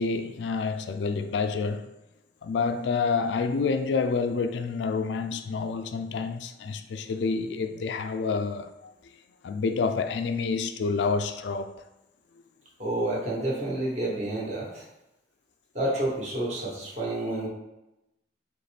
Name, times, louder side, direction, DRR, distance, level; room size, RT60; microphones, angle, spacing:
voice 1, 0.0-1.9 2.4-8.9 9.4-11.7, left 4 dB, 75° left, 0.3 m, -28 dB
voice 2, 12.8-14.8 15.7-17.5, right 1 dB, 40° right, 1.2 m, -29 dB
4.0 x 3.0 x 3.3 m
head